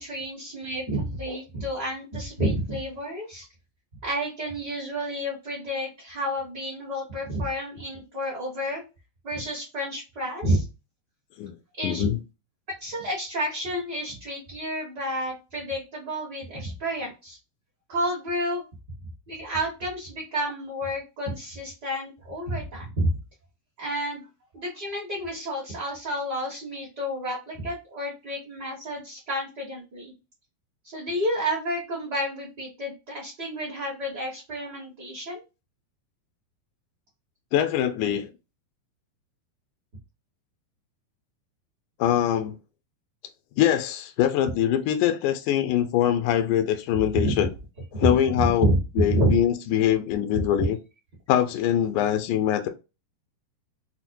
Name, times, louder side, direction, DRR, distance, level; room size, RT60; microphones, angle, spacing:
voice 1, 0.0-3.4 4.0-8.8 9.2-10.6 11.8-12.1 12.8-17.4 17.9-18.6 19.3-23.1 23.8-24.3 24.5-30.1 30.8-35.4 47.1-47.5 48.0-48.8 49.1-49.4 50.3-50.4, right 1 dB, 60° right, 1.0 m, -30 dB
voice 2, 11.8-12.2 37.5-38.3 42.0-42.6 43.6-47.5 47.9-48.7 49.0-50.8 51.3-52.7, left 11 dB, 90° left, 1.7 m, -23 dB
5.7 x 2.1 x 2.6 m
omnidirectional pair, 4.0 m